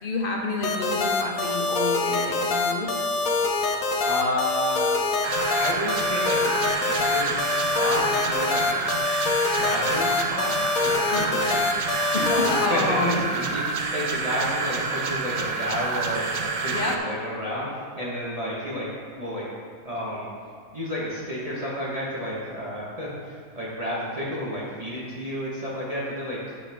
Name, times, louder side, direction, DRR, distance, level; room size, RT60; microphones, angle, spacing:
voice 1, 0.0-2.9 11.1-11.3 12.1-13.2 16.7-17.0, left 2 dB, 45° left, 0 dB, 1.1 m, -28 dB
sound 1, 0.6-12.7, left 3 dB, 80° left, 1.2 m, -25 dB
voice 2, 4.0-4.9 5.6-8.8 9.4-10.5 10.9-11.8 12.3-18.9 19.2-19.5 19.8-20.3 20.7-26.6, equal, 30° right, -7 dB, 1.3 m, -31 dB
sound 2, 5.2-17.0, right 4 dB, 70° right, 0.4 m, -28 dB
8.9 x 6.1 x 3.5 m, 2.1 s
omnidirectional pair, 1.5 m